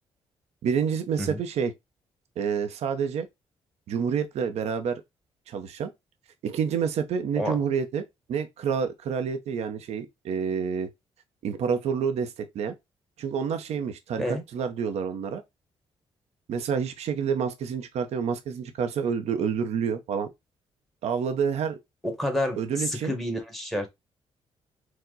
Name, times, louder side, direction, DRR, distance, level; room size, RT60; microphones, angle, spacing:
voice 1, 0.6-1.7 2.4-3.3 3.9-5.0 5.5-5.9 6.4-8.0 8.3-10.9 11.4-12.7 13.2-15.4 16.5-20.3 21.0-21.8 22.6-23.1, right 6 dB, 75° right, 0.7 m, -28 dB
voice 2, 22.0-23.9, left 1 dB, ahead, 1.5 m, -29 dB
4.6 x 2.2 x 3.9 m
cardioid pair, 85°, 11 cm